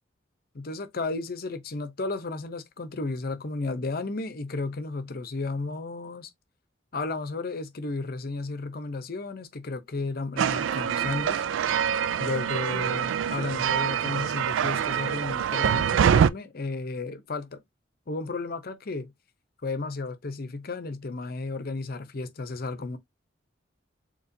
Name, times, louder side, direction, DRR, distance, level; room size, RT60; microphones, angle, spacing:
voice 1, 0.5-6.3 6.9-11.4 12.2-17.6 18.1-19.1 19.6-23.0, left 3 dB, 50° left, 0.7 m, -33 dB
sound 1, 10.4-16.3, right 8 dB, 80° right, 0.3 m, -25 dB
4.2 x 3.0 x 2.6 m
head